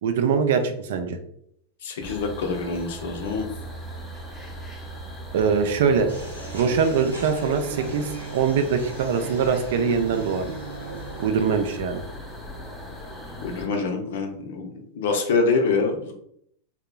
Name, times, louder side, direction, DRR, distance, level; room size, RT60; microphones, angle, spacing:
voice 1, 0.0-1.2 5.3-6.1 6.5-10.5 11.2-12.0, right 6 dB, 55° right, 7 dB, 0.4 m, -23 dB
voice 2, 1.8-3.5 13.4-16.1, left 4 dB, 55° left, 4 dB, 0.6 m, -25 dB
sound 1, 2.0-13.7, equal, 5° left, 0.8 m, -39 dB
sound 2, 6.1-11.7, right 2 dB, 80° right, 1.0 m, -38 dB
3.5 x 2.8 x 2.2 m, 0.70 s
figure-of-eight pair, 90°, 0 cm